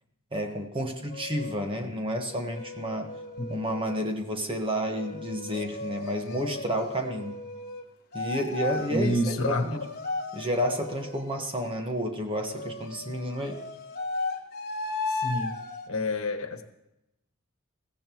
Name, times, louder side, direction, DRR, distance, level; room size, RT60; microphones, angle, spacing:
voice 1, 0.3-3.1 3.5-7.4 8.1-9.8 10.3-13.6, equal, 25° right, 3 dB, 1.4 m, -31 dB
sound 1, 1.1-1.5 2.3-4.1 5.0-7.8 8.1-11.4 12.3-15.9, left 3 dB, 45° left, 1.3 m, -36 dB
voice 2, 3.4-3.8 8.9-9.6 15.1-15.6 15.9-16.6, left 1 dB, 75° left, 7 dB, 1.3 m, -28 dB
21.5 x 16.0 x 3.1 m, 0.92 s
head